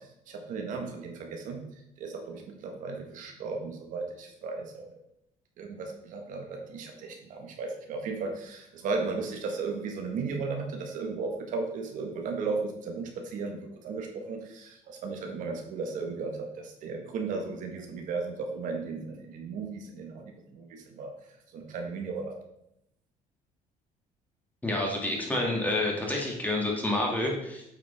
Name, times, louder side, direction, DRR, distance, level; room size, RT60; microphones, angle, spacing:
voice 1, 0.0-1.6 2.0-4.9 5.6-21.1 21.5-22.4, right 4 dB, 70° right, 3 dB, 1.3 m, -35 dB
voice 2, 24.6-27.6, left 2 dB, 10° left, -2 dB, 2.2 m, -28 dB
8.5 x 5.0 x 3.5 m, 0.80 s
cardioid pair, 105°, 14 cm